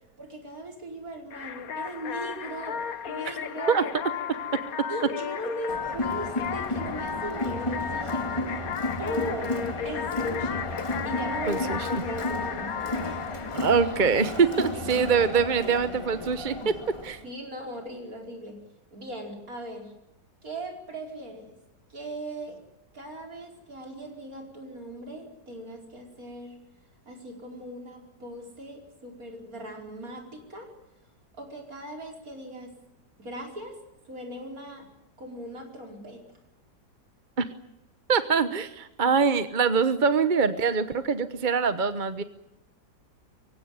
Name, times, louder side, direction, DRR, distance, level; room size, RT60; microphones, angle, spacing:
voice 1, 0.2-3.8 4.9-8.5 9.0-9.6 9.8-13.7 14.5-14.8 17.2-18.6 18.9-19.9 20.4-21.6 21.9-22.6 22.9-26.6 27.1-30.7 31.3-32.8 33.2-33.8 34.0-34.9 35.2-36.2, right 1 dB, 50° right, 2 dB, 5.3 m, -39 dB
sound 1, 1.3-14.8, left 8 dB, 60° left, 1.3 m, -34 dB
Crowd, 5.7-17.2, left 1 dB, 15° left, 2.3 m, -33 dB
voice 2, 11.5-11.8 13.5-16.7 17.0-17.2 37.4-37.5 38.1-42.2, right 5 dB, 35° right, 11 dB, 1.0 m, -24 dB
24.0 x 16.5 x 9.5 m, 0.90 s
omnidirectional pair, 1.9 m